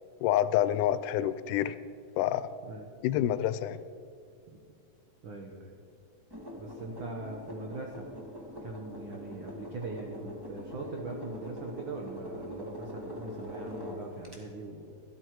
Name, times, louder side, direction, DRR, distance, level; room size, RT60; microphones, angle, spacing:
voice 1, 0.2-1.8 2.2-2.5 3.0-3.8, left 12 dB, 85° left, 14 dB, 2.0 m, -27 dB
voice 2, 5.2-5.8 6.6-8.1 8.6-14.9, right 3 dB, 75° right, 2 dB, 1.1 m, -41 dB
sound 1, 6.3-14.4, left 1 dB, 15° right, 0.8 m, -43 dB
13.0 x 12.5 x 4.6 m, 2.3 s
omnidirectional pair, 3.6 m